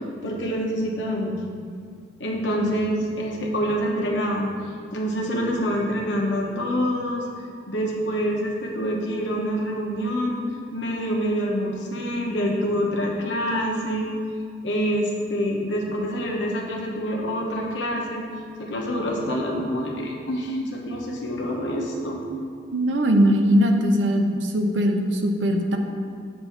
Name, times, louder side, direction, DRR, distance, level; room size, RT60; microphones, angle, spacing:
voice 1, 0.2-1.4 2.2-4.5 4.9-7.2 7.7-10.4 10.7-14.1 14.6-18.2 18.6-22.2, equal, 85° left, -1 dB, 1.0 m, -26 dB
voice 2, 22.7-25.8, equal, 85° right, 4 dB, 0.6 m, -20 dB
7.7 x 2.7 x 5.6 m, 2.1 s
head